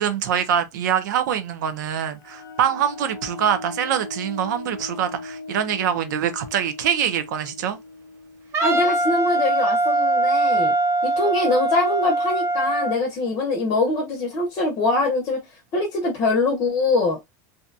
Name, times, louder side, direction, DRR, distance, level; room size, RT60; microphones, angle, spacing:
voice 1, 0.0-7.8, right 9 dB, 80° right, 0.6 m, -24 dB
sound 1, 2.2-9.6, left 3 dB, 90° left, 0.7 m, -39 dB
Wind instrument woodwind instrument, 8.5-13.0, right 2 dB, 25° right, 0.5 m, -21 dB
voice 2, 8.6-10.7 11.0-15.4 15.7-17.2, left 3 dB, 35° left, 0.7 m, -23 dB
2.7 x 2.2 x 2.5 m
supercardioid pair, 155°, 10 cm